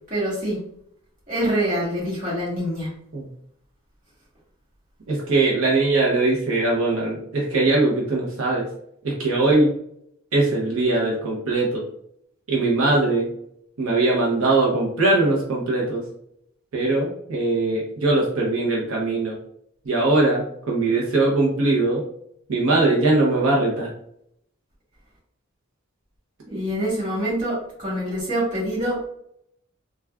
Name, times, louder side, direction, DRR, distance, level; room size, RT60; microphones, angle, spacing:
voice 1, 0.1-0.6 1.3-2.9 26.5-29.1, right 1 dB, 35° right, -6 dB, 1.2 m, -25 dB
voice 2, 5.1-8.6 9.0-9.7 10.3-11.8 12.5-13.3 13.8-16.0 16.7-19.4 19.8-22.0 22.5-23.9, right 2 dB, 80° right, -4 dB, 0.8 m, -21 dB
3.3 x 2.3 x 2.3 m, 0.71 s
head